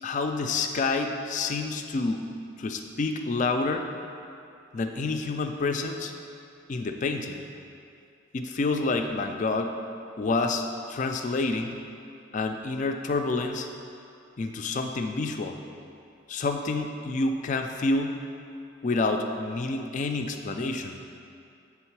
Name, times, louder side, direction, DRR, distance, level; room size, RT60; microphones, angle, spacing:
voice 1, 0.0-2.3 2.6-3.8 4.7-6.1 6.7-7.4 8.3-9.8 10.2-11.8 12.3-13.7 14.4-15.6 16.3-18.2 18.8-21.0, left 3 dB, 35° left, 5 dB, 0.3 m, -28 dB
7.3 x 3.5 x 4.6 m, 2.6 s
head